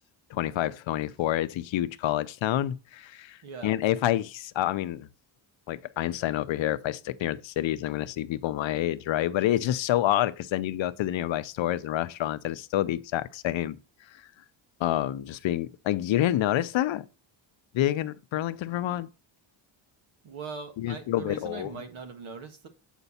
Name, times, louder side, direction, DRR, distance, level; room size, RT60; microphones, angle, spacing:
voice 1, 0.3-5.1 5.7-13.8 14.8-17.1 17.7-19.1 20.8-21.8, left 13 dB, 70° left, 0.6 m, -28 dB
voice 2, 3.4-3.7 20.2-22.7, right 5 dB, 75° right, 1.6 m, -40 dB
8.2 x 4.5 x 4.1 m
cardioid pair, 120°, 48 cm